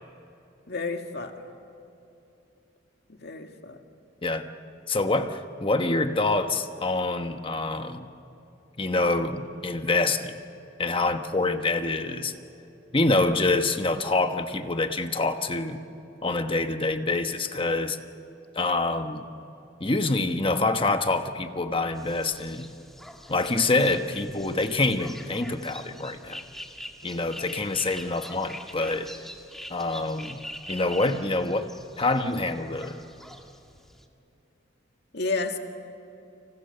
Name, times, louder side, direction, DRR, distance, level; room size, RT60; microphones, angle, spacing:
voice 1, 0.7-1.4 3.1-3.8 35.1-35.6, left 3 dB, 60° left, 4 dB, 2.1 m, -31 dB
voice 2, 4.9-8.1 8.8-10.4 10.8-12.3 12.9-15.8 16.2-18.0 18.5-19.3 19.8-22.7 23.3-26.4 27.0-29.1 29.7-30.4 30.7-31.7 32.0-33.0, left 2 dB, 30° left, 7 dB, 1.1 m, -26 dB
sound 1, 22.0-34.1, equal, ahead, 1.8 m, -44 dB
29.5 x 27.0 x 6.7 m, 2.9 s
head